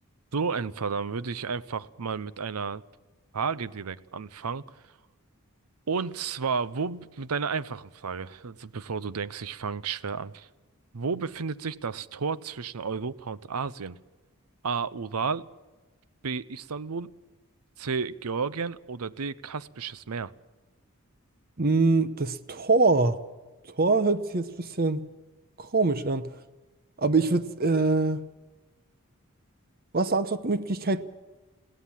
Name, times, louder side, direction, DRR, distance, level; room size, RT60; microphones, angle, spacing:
voice 1, 0.3-2.8 3.3-4.6 5.9-10.5 10.9-14.0 14.6-15.5 16.2-17.1 17.8-20.3, right 5 dB, 85° right, 17 dB, 0.7 m, -32 dB
voice 2, 21.6-23.2 23.8-25.0 25.6-26.3 27.0-28.2 29.9-31.0, right 3 dB, 40° right, 13 dB, 0.9 m, -24 dB
21.5 x 16.5 x 7.4 m, 1.2 s
head